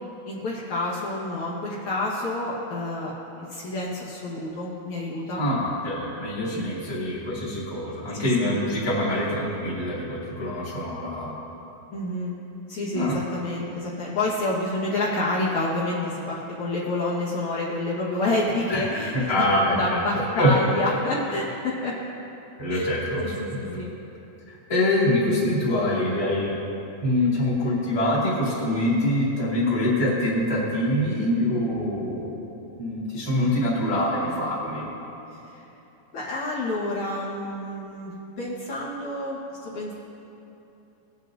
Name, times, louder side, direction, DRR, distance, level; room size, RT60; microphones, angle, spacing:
voice 1, 0.3-5.4 6.5-6.7 8.2-8.6 11.9-12.3 12.7-22.0 22.7-22.9 23.2-23.9 35.4-35.6 36.1-39.9, left 2 dB, 60° left, -7 dB, 2.4 m, -28 dB
voice 2, 5.4-11.3 12.9-13.1 18.7-18.8 19.3-20.0 20.4-20.5 22.6-23.6 24.5-26.5 27.0-32.3 32.8-34.9, left 1 dB, 10° left, -9 dB, 1.8 m, -25 dB
19.5 x 8.2 x 2.6 m, 2.9 s
omnidirectional pair, 4.1 m